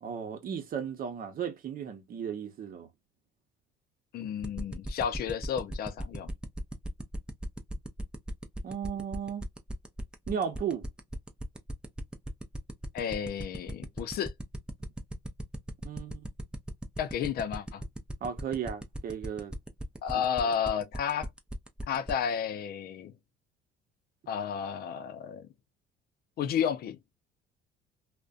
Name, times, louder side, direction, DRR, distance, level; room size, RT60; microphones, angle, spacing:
voice 1, 0.0-2.9 8.6-9.4 10.3-10.8 15.8-16.3 18.2-19.5 20.1-20.2, right 7 dB, 55° right, 0.8 m, -35 dB
voice 2, 4.1-6.3 12.9-14.3 17.0-17.8 20.0-21.3 21.9-23.1 24.3-25.5 26.4-27.0, left 8 dB, 60° left, 0.5 m, -32 dB
sound 1, 4.4-22.1, right 1 dB, 5° right, 0.5 m, -37 dB
2.5 x 2.1 x 2.4 m
cardioid pair, 95°, 18 cm